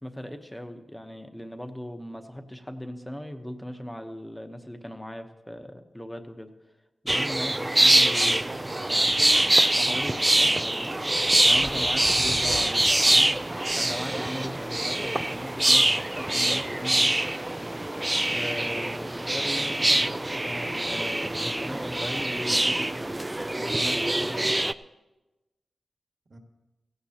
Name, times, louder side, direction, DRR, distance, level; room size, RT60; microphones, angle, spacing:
voice 1, 0.0-6.5 7.0-8.4 9.8-11.0 11.4-13.3 13.7-17.2 18.3-22.9 23.5-24.6, equal, 10° left, 6 dB, 1.0 m, -38 dB
sound 1, 7.1-24.7, right 1 dB, 15° right, 0.3 m, -24 dB
voice 2, 8.1-9.1 15.7-16.0 19.8-20.1 22.8-23.5 26.3-26.4, right 2 dB, 50° right, 3 dB, 1.6 m, -45 dB
16.5 x 16.0 x 2.9 m, 1.1 s
wide cardioid pair, 100°, 0 cm